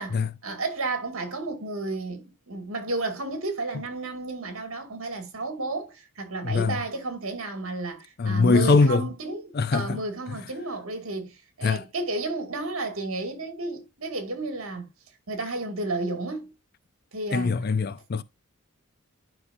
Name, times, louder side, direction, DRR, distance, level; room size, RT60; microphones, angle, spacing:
voice 1, 0.0-14.9 15.3-16.5 17.1-17.6, right 2 dB, 75° right, 2.2 m, -32 dB
voice 2, 6.4-6.8 8.2-9.1 9.5-10.0 10.3-10.4 11.6-11.8 17.3-18.2, left 4 dB, 45° left, 0.5 m, -22 dB
11.5 x 5.6 x 2.6 m
head